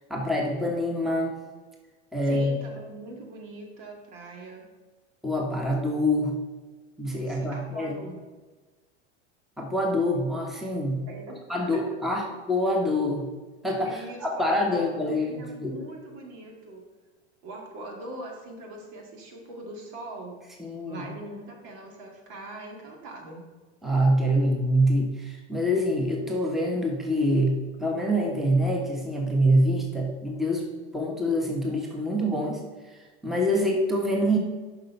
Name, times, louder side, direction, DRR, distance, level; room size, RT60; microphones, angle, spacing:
voice 1, 0.0-1.4 2.1-2.6 5.2-6.3 7.0-8.1 9.6-11.0 11.5-13.3 13.6-15.9 20.6-21.0 23.8-30.7 30.9-34.4, equal, ahead, 0 dB, 1.3 m, -25 dB
voice 2, 2.3-4.6 7.3-8.1 11.0-11.4 11.7-12.0 12.2-12.3 13.8-16.8 17.4-20.4 20.9-23.4, right 2 dB, 60° right, 0 dB, 2.2 m, -42 dB
6.6 x 5.8 x 5.4 m, 1.3 s
hypercardioid pair, 100°, 34 cm